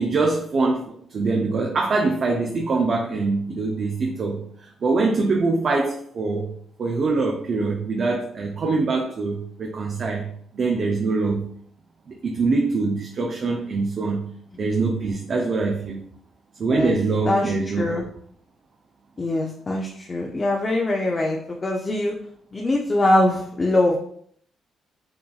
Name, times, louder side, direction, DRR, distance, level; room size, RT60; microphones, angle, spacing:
voice 1, 0.0-6.5 6.8-11.5 12.1-14.3 14.6-16.0 16.6-17.8, right 3 dB, 55° right, 0 dB, 0.6 m, -24 dB
voice 2, 17.3-18.1 19.2-22.2 22.5-24.0, left 1 dB, 35° left, -1 dB, 0.6 m, -22 dB
5.7 x 2.5 x 2.4 m, 0.64 s
supercardioid pair, 60°, 0 cm